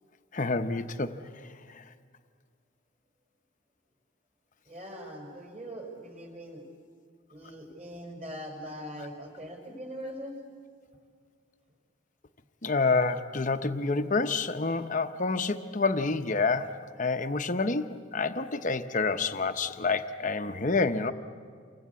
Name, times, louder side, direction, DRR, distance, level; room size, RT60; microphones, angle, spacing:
voice 1, 0.3-1.1 1.7-1.8 12.6-21.1, left 3 dB, 35° left, 8 dB, 0.9 m, -28 dB
voice 2, 4.7-6.6 7.3-10.4, equal, 30° right, 2 dB, 5.2 m, -41 dB
29.0 x 23.5 x 8.3 m, 2.1 s
head